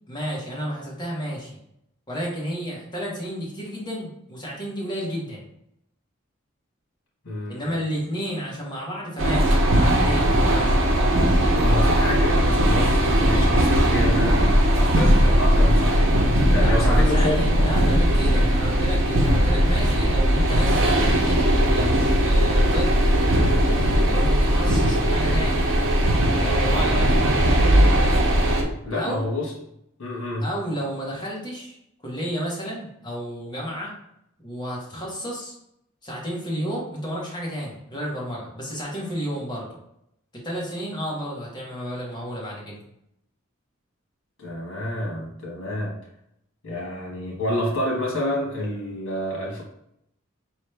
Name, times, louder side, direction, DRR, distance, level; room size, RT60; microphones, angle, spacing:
voice 1, 0.1-1.5 2.1-5.5 7.5-10.9 16.5-23.0 24.1-25.7 26.4-27.3 28.9-29.3 30.4-31.8 32.0-33.9 34.4-35.6 36.0-39.7 40.3-42.8, equal, 20° left, -4 dB, 1.4 m, -31 dB
voice 2, 7.2-7.8 11.5-16.2 16.5-17.6 18.2-18.5 28.8-29.5 30.0-30.5 44.4-45.9 46.6-49.6, left 1 dB, 90° left, -1 dB, 1.3 m, -28 dB
sound 1, 9.2-28.6, equal, 65° right, 0.9 m, -19 dB
4.7 x 3.1 x 3.3 m, 0.77 s
head